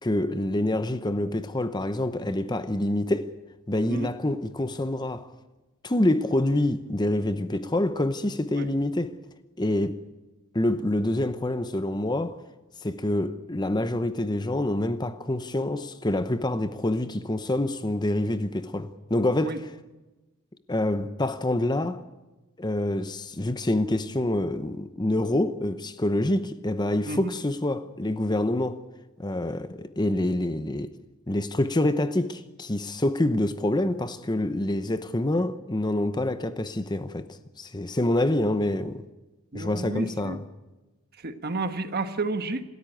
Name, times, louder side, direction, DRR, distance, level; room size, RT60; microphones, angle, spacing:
voice 1, 0.0-3.3 3.7-5.3 5.8-9.1 9.6-10.0 10.5-12.4 12.8-19.6 20.7-22.0 22.6-28.8 29.2-30.9 31.3-39.0 39.5-40.4, left 1 dB, 20° left, 0.8 m, -26 dB
voice 2, 39.5-40.4 41.2-42.6, right 3 dB, 45° right, 1.3 m, -31 dB
27.0 x 13.5 x 9.2 m
head